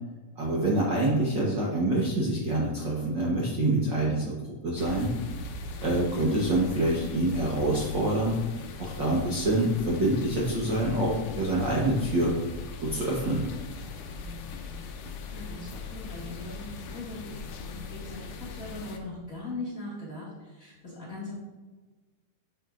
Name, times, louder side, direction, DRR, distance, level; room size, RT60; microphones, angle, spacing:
voice 1, 0.4-4.3 4.6-5.1 5.8-8.4 8.8-12.3 12.8-13.4, right 1 dB, 90° right, -4 dB, 1.0 m, -26 dB
sound 1, 4.8-19.0, left 4 dB, 80° left, 2.1 m, -40 dB
voice 2, 5.6-5.9 14.0-15.0 15.3-21.3, left 2 dB, 30° left, -7 dB, 1.7 m, -41 dB
9.1 x 6.0 x 2.5 m, 1.2 s
omnidirectional pair, 3.8 m